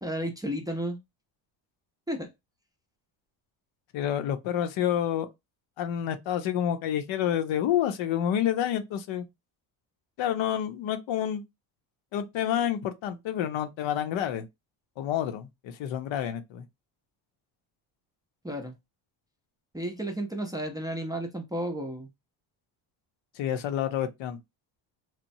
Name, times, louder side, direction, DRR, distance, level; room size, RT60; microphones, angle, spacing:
voice 1, 0.0-1.0 2.1-2.3 18.4-18.7 19.7-22.1, right 1 dB, 10° right, 0.5 m, -32 dB
voice 2, 3.9-5.3 5.8-9.2 10.2-11.4 12.1-14.4 15.0-16.6 23.4-24.4, left 10 dB, 70° left, 0.7 m, -28 dB
3.0 x 2.1 x 2.6 m
cardioid pair, 95°, 49 cm